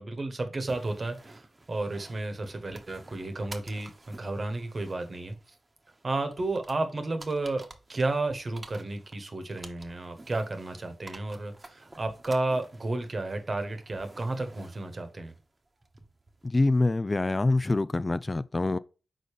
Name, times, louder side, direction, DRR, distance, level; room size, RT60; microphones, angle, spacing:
voice 1, 0.0-5.3 6.0-7.6 7.9-15.3, right 2 dB, 50° right, 1.2 m, -32 dB
sound 1, 0.7-16.5, right 2 dB, 35° right, 1.1 m, -51 dB
voice 2, 16.4-18.8, left 2 dB, 35° left, 0.3 m, -25 dB
4.9 x 4.0 x 4.9 m
cardioid pair, 40°, 0 cm